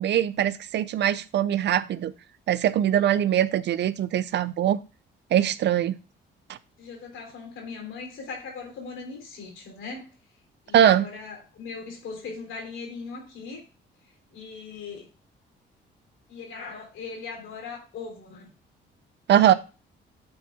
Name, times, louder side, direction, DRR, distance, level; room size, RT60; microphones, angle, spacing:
voice 1, 0.0-2.1 2.5-4.8 5.3-5.9 6.5-6.6 10.7-11.0 19.3-19.5, right 10 dB, 60° right, 15 dB, 0.5 m, -22 dB
voice 2, 6.8-10.1 10.6-13.6 14.3-15.1 16.3-18.5 19.4-19.6, left 4 dB, 80° left, 1 dB, 3.3 m, -39 dB
8.7 x 4.3 x 3.5 m, 0.33 s
cardioid pair, 90°, 20 cm